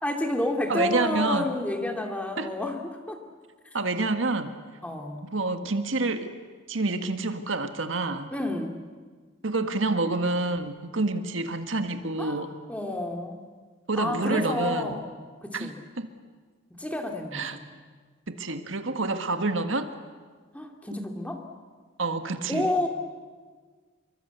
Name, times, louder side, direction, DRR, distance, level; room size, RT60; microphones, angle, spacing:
voice 1, 0.0-3.2 4.8-5.3 8.3-8.8 12.2-12.4 12.7-13.4 14.0-15.1 15.4-15.8 16.8-17.8 20.5-21.5 22.5-22.9, left 1 dB, 5° left, 3 dB, 2.4 m, -30 dB
voice 2, 0.7-1.5 2.4-2.5 3.7-4.5 5.2-6.3 6.7-8.3 9.4-12.5 13.9-14.9 15.5-15.7 16.0-16.1 17.3-17.6 18.3-19.9 22.0-22.9, right 3 dB, 80° right, 7 dB, 1.7 m, -28 dB
26.0 x 24.0 x 8.2 m, 1.5 s
head